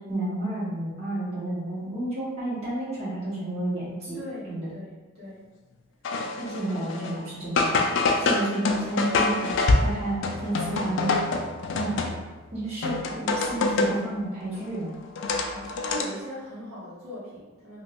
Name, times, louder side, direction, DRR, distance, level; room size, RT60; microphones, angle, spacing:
voice 1, 0.1-4.2 4.5-4.7 6.4-7.8 8.2-11.1 11.7-11.9 12.5-14.9, right 1 dB, 30° right, -12 dB, 1.5 m, -31 dB
voice 2, 4.1-5.4 6.4-6.9 8.6-8.7 12.2-12.3 15.5-17.8, equal, 90° right, -8 dB, 1.2 m, -40 dB
sound 1, 6.0-7.2 7.6-12.4 12.8-14.1 14.5-16.0, left 3 dB, 60° left, 0.3 m, -26 dB
2.9 x 2.6 x 2.9 m, 1.2 s
head